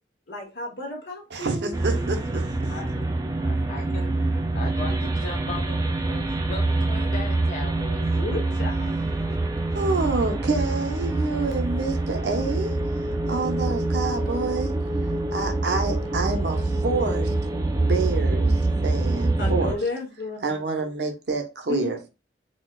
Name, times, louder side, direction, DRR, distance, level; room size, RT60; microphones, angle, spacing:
voice 1, 0.3-2.0 8.1-8.9 19.4-20.6 21.7-22.0, left 2 dB, 65° left, 1.0 m, -33 dB
voice 2, 1.3-2.7 9.7-12.8 13.3-14.8 15.3-17.5 17.8-19.8 20.4-22.1, right 3 dB, 70° right, 0.7 m, -28 dB
sound 1, 1.7-19.7, right 2 dB, 20° right, 0.4 m, -25 dB
voice 3, 3.4-4.1 4.5-8.0, left 3 dB, 40° left, 0.5 m, -38 dB
4.2 x 2.3 x 2.3 m
head